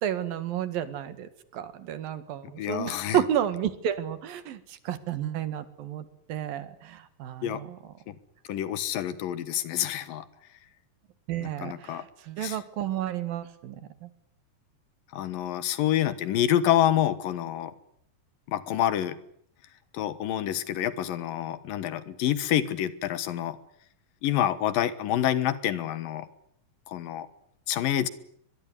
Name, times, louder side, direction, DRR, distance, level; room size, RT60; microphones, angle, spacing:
voice 1, 0.0-7.8 11.3-13.8 14.0-14.1, right 10 dB, 90° right, 13 dB, 3.6 m, -31 dB
voice 2, 2.6-3.2 7.4-7.6 8.1-8.2 8.5-10.2 11.4-12.0 12.4-12.6 15.1-17.7 18.5-19.2 19.9-23.6 24.2-26.3 26.9-27.3 27.7-28.1, left 11 dB, 80° left, 15 dB, 3.1 m, -27 dB
23.0 x 21.5 x 9.9 m, 0.69 s
omnidirectional pair, 4.0 m